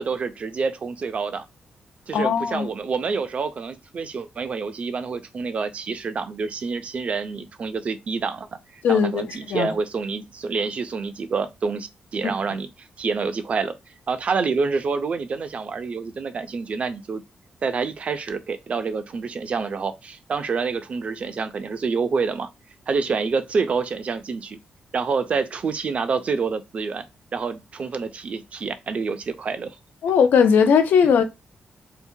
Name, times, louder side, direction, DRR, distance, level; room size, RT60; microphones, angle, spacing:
voice 1, 0.0-1.5 2.1-8.5 8.7-13.7 14.1-17.2 17.6-22.5 22.9-24.6 24.9-27.0 27.3-29.8, right 5 dB, 40° right, 0.3 m, -27 dB
voice 2, 2.1-2.7 8.8-9.7 12.2-12.3 30.0-31.2, left 6 dB, 90° left, 0.4 m, -19 dB
2.7 x 2.1 x 2.6 m
wide cardioid pair, 155°, 3 cm